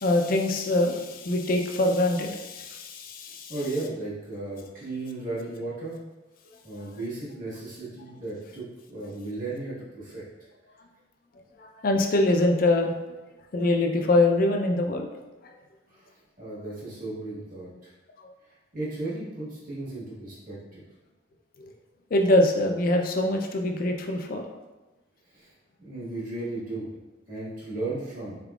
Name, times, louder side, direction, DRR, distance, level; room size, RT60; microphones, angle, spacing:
voice 1, 0.0-3.5 11.6-13.0 13.5-15.1 21.6-21.7 22.1-24.5, left 2 dB, 45° left, 3 dB, 0.4 m, -24 dB
voice 2, 3.5-6.0 6.6-10.2 15.9-16.1 16.4-17.9 18.7-20.8 25.3-25.5 25.8-26.9 27.3-28.4, right 2 dB, 45° right, -8 dB, 1.4 m, -35 dB
3.9 x 3.5 x 2.3 m, 1.1 s
head